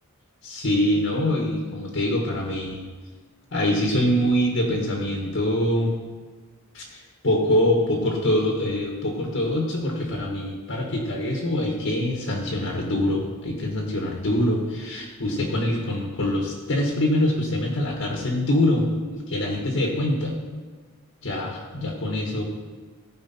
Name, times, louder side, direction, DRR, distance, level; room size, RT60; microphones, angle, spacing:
voice 1, 0.4-2.8 3.5-5.9 6.7-20.4 21.2-22.4, left 1 dB, 60° left, -1 dB, 1.4 m, -24 dB
15.0 x 5.0 x 4.3 m, 1.4 s
head